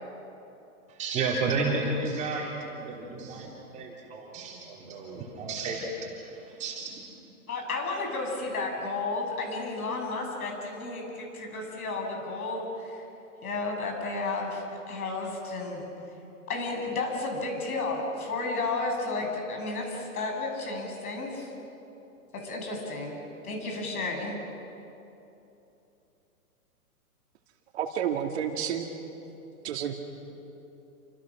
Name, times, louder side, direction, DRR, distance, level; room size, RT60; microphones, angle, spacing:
voice 1, 0.9-7.0, right 3 dB, 15° right, -2 dB, 3.3 m, -32 dB
voice 2, 7.5-13.0 13.4-15.8 16.5-21.5 22.3-23.2 23.4-24.4, left 3 dB, 70° left, 2 dB, 7.3 m, -32 dB
voice 3, 27.7-28.9 29.6-29.9, right 9 dB, 45° right, 3 dB, 2.5 m, -30 dB
29.0 x 25.5 x 6.3 m, 2.9 s
hypercardioid pair, 165°, 45 cm